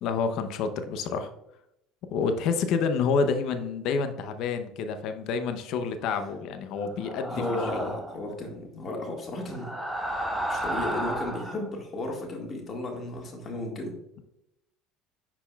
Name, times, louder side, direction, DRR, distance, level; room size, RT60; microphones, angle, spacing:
voice 1, 0.0-1.3 2.1-7.4 7.7-7.9, left 5 dB, 65° left, 8 dB, 0.7 m, -28 dB
sound 1, 7.0-8.2 9.5-11.6, right 1 dB, 5° right, 1.1 m, -32 dB
voice 2, 7.3-9.7 10.0-10.1 10.5-13.9, left 2 dB, 35° left, 0 dB, 1.7 m, -34 dB
10.0 x 4.2 x 2.3 m, 0.83 s
supercardioid pair, 100°, 0 cm